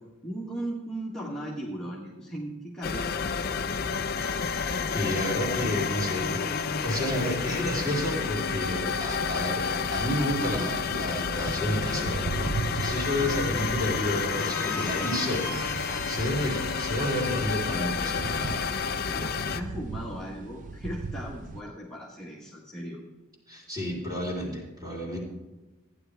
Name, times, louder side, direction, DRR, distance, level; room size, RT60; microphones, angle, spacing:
voice 1, 0.2-3.2 19.0-23.0, right 1 dB, 5° left, -7 dB, 1.5 m, -37 dB
sound 1, 2.8-19.6, left 5 dB, 45° left, 0.5 m, -30 dB
voice 2, 4.1-6.6 6.8-18.6 23.5-25.2, left 1 dB, 20° right, -3 dB, 3.1 m, -31 dB
sound 2, 10.4-21.6, right 3 dB, 40° right, 0.4 m, -38 dB
Squeak, 13.0-19.1, right 2 dB, 85° right, 2.7 m, -42 dB
15.0 x 10.0 x 3.4 m, 1.1 s
head